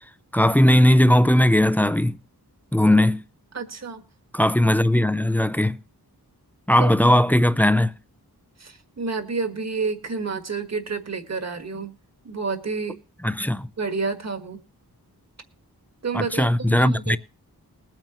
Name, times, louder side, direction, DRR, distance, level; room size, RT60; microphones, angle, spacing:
voice 1, 0.3-2.2 2.7-3.2 4.3-5.8 6.7-7.9 13.2-13.7 16.1-17.2, left 1 dB, 5° left, 0.4 m, -18 dB
voice 2, 3.5-4.0 6.8-7.0 8.6-11.9 12.2-13.0 13.8-14.6 16.0-17.2, right 4 dB, 45° right, 1.6 m, -29 dB
21.0 x 8.9 x 3.0 m
wide cardioid pair, 110°, 38 cm